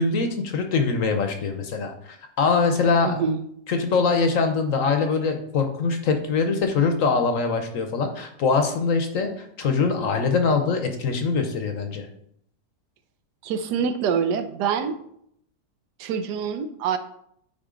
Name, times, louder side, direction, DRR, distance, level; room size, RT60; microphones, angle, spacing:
voice 1, 0.0-3.2 3.7-12.1, left 4 dB, 60° left, 5 dB, 1.1 m, -23 dB
voice 2, 3.0-3.4 13.4-15.0 16.0-17.0, right 6 dB, 80° right, 10 dB, 1.3 m, -25 dB
8.9 x 4.6 x 3.8 m, 0.70 s
omnidirectional pair, 1.8 m